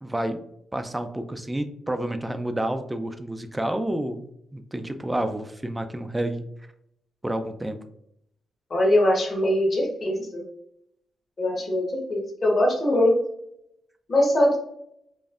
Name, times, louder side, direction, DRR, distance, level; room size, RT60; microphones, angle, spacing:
voice 1, 0.0-0.4 0.7-6.4 7.2-7.8, right 1 dB, 10° right, 8 dB, 0.3 m, -29 dB
voice 2, 8.7-10.4 11.4-13.1 14.1-14.6, left 1 dB, 35° left, -2 dB, 1.3 m, -22 dB
5.1 x 2.6 x 2.4 m, 0.75 s
wide cardioid pair, 145°, 0 cm